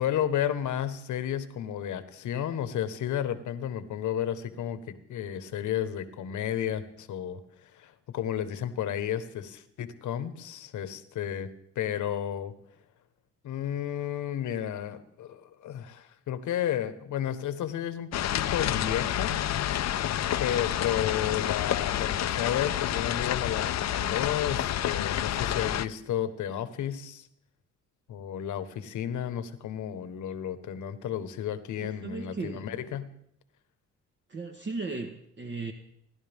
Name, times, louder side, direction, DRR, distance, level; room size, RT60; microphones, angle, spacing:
voice 1, 0.0-11.5 11.7-12.5 13.4-19.4 20.4-27.3 28.1-33.1, left 10 dB, 80° left, 11 dB, 1.4 m, -32 dB
sound 1, 18.1-25.9, left 11 dB, 60° left, 0.7 m, -29 dB
voice 2, 31.8-32.7 34.3-35.7, right 3 dB, 40° right, 2 dB, 1.5 m, -36 dB
29.5 x 11.5 x 3.6 m, 0.74 s
cardioid pair, 90°, 30 cm